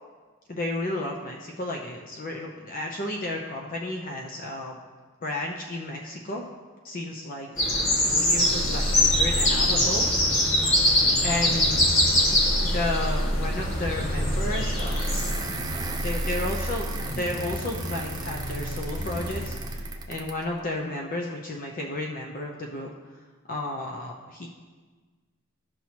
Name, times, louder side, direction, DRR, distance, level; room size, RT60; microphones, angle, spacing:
voice 1, 0.5-4.8 5.2-6.4 6.8-7.5 8.0-10.1 11.2-11.8 12.6-15.1 15.4-15.5 16.0-22.9 23.5-24.5, left 1 dB, 40° left, 0 dB, 0.6 m, -32 dB
sound 1, 7.6-15.3, left 1 dB, 60° left, 1.9 m, -23 dB
sound 2, 8.3-20.3, equal, 80° left, 1.2 m, -31 dB
sound 3, 14.8-20.4, right 5 dB, 20° right, 0.5 m, -38 dB
13.5 x 5.9 x 2.9 m, 1.4 s
head